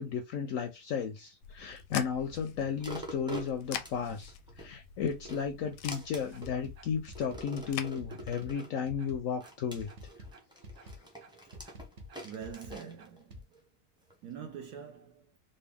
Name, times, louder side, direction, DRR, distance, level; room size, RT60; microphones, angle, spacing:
voice 1, 0.0-9.9 10.8-10.9, left 7 dB, 70° left, 0.8 m, -34 dB
sound 1, 1.4-7.9, left 9 dB, 85° left, 1.2 m, -45 dB
sound 2, 2.8-4.7 5.1-6.5 7.2-8.8 9.4-13.6 14.1-14.2, right 2 dB, 5° right, 0.5 m, -46 dB
sound 3, 6.3-13.4, equal, 50° right, 1.0 m, -48 dB
voice 2, 12.2-13.4 14.2-15.3, right 7 dB, 75° right, 1.1 m, -44 dB
4.0 x 2.2 x 3.4 m
omnidirectional pair, 1.8 m